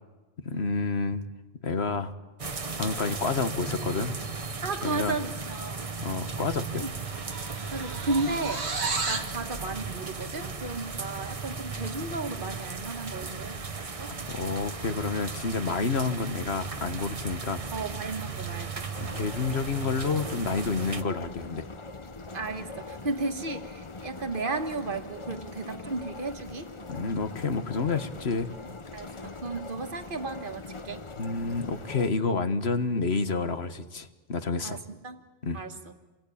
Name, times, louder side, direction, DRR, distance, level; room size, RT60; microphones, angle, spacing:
voice 1, 0.4-1.3 1.6-2.1 2.8-4.2 4.8-5.2 6.0-6.9 14.3-17.6 19.0-21.7 26.9-28.5 29.1-29.2 31.2-34.8 35.4-35.6, left 4 dB, 75° left, 9 dB, 1.7 m, -29 dB
sound 1, 2.4-21.0, right 4 dB, 35° right, 1.0 m, -36 dB
voice 2, 4.6-5.9 6.8-6.9 7.7-8.7 9.1-14.1 17.7-18.9 22.3-26.7 28.9-31.0 34.6-34.8 35.0-35.2 35.5-35.8, right 3 dB, 55° right, 7 dB, 1.8 m, -34 dB
sound 2, 6.9-9.4, right 4 dB, 80° right, 2.1 m, -33 dB
sound 3, 18.9-32.1, left 3 dB, 30° left, 1.0 m, -42 dB
28.0 x 21.5 x 8.6 m, 1.2 s
omnidirectional pair, 1.1 m